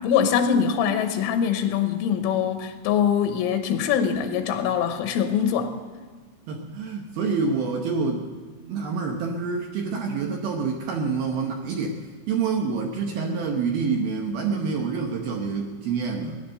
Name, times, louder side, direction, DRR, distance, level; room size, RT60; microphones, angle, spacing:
voice 1, 0.0-5.7, left 8 dB, 80° left, 6 dB, 3.5 m, -23 dB
voice 2, 6.5-8.3 8.7-12.0 12.3-16.4, right 5 dB, 75° right, 2 dB, 2.2 m, -27 dB
17.5 x 11.0 x 6.6 m, 1.5 s
omnidirectional pair, 5.7 m